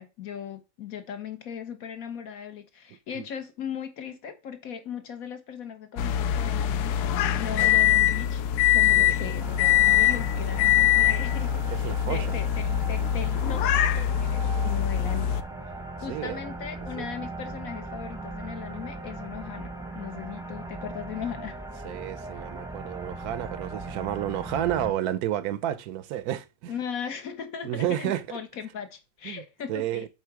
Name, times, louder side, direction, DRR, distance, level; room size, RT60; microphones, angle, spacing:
voice 1, 0.0-7.0 7.3-8.4 8.7-15.4 16.0-21.6 26.7-30.1, left 8 dB, 65° left, 1.4 m, -38 dB
sound 1, 6.0-15.4, left 11 dB, 85° left, 1.1 m, -23 dB
voice 2, 8.9-9.4 11.7-12.4 16.1-16.4 17.0-17.1 21.8-26.7 27.6-28.2 29.2-29.4 29.7-30.1, right 12 dB, 75° right, 1.1 m, -31 dB
sound 2, 9.4-24.9, right 2 dB, 5° right, 0.6 m, -39 dB
7.7 x 3.9 x 4.6 m
omnidirectional pair, 1.6 m